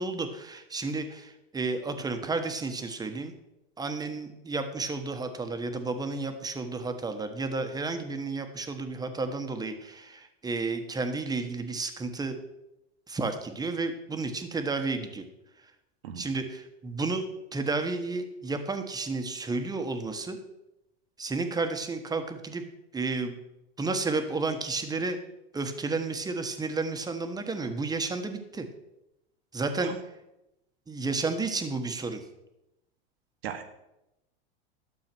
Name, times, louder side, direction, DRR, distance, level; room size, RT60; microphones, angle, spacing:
voice 1, 0.0-3.3 3.8-12.4 13.1-15.2 16.2-17.2 17.5-20.4 21.2-22.6 22.9-23.4 23.8-25.2 25.5-28.7 29.5-29.9 30.9-32.2, right 3 dB, 15° right, 7 dB, 1.3 m, -32 dB
voice 2, 16.0-16.2 29.8-30.0 33.4-33.7, right 9 dB, 80° right, 7 dB, 1.7 m, -36 dB
12.5 x 7.0 x 6.1 m, 0.90 s
supercardioid pair, 120°, 30 cm